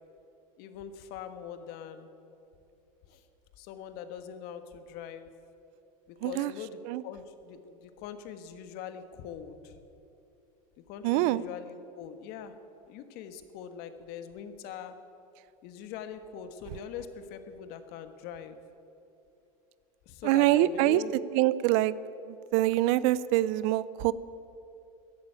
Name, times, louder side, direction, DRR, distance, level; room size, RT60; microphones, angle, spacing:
voice 1, 0.6-2.1 3.1-3.2 3.6-5.3 6.1-9.8 10.9-12.5 12.9-14.9 15.6-18.6 20.0-21.1, left 8 dB, 60° left, 9 dB, 1.5 m, -42 dB
voice 2, 11.0-11.4 20.2-21.0 21.3-21.9 22.3-24.1, right 16 dB, 65° right, 18 dB, 0.6 m, -25 dB
14.5 x 11.5 x 9.0 m, 2.8 s
supercardioid pair, 110°, 18 cm